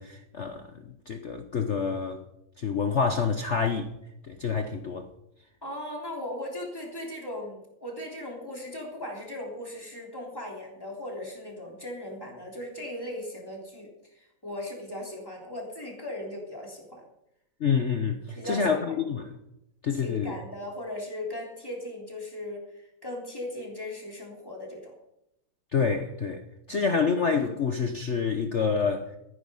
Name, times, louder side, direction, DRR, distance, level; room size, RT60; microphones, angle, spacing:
voice 1, 0.0-2.2 2.6-3.9 4.3-5.1 17.6-19.2 19.8-20.4 25.7-26.4 26.7-29.1, left 5 dB, 55° left, 0.7 m, -27 dB
voice 2, 5.6-17.0 18.3-19.2 19.9-24.9 26.7-26.9, left 1 dB, 10° left, 3.3 m, -38 dB
14.5 x 9.8 x 5.5 m
omnidirectional pair, 2.4 m